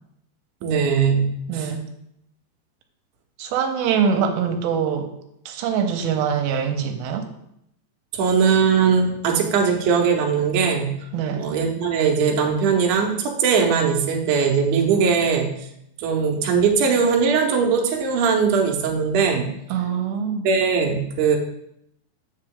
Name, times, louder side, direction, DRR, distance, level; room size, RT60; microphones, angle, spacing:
voice 1, 0.6-1.7 8.1-10.9 11.4-15.5 16.0-19.5 20.4-21.4, right 6 dB, 70° right, 2 dB, 2.1 m, -20 dB
voice 2, 1.5-1.9 3.4-5.1 5.5-7.3 11.1-11.5 19.7-20.5, right 7 dB, 85° right, 6 dB, 2.5 m, -23 dB
7.6 x 5.1 x 3.7 m, 0.77 s
omnidirectional pair, 4.2 m